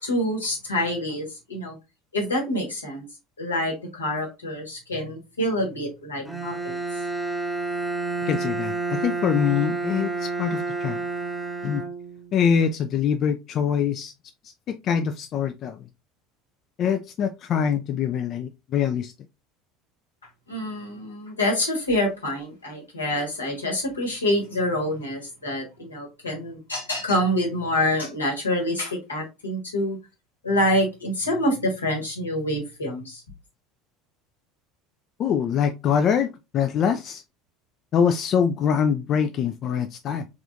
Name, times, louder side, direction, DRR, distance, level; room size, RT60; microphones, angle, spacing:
voice 1, 0.0-1.8 2.1-3.1 3.4-6.8 20.5-30.0 30.4-33.2, left 1 dB, 80° left, 1.3 m, -26 dB
Bowed string instrument, 6.2-12.4, right 3 dB, 5° right, 0.7 m, -29 dB
voice 2, 8.3-11.0 11.6-11.8 12.3-14.1 14.7-15.8 16.8-19.1 35.2-37.2 37.9-40.3, left 7 dB, 40° left, 0.3 m, -24 dB
3.6 x 3.3 x 2.5 m
figure-of-eight pair, 70°, 0 cm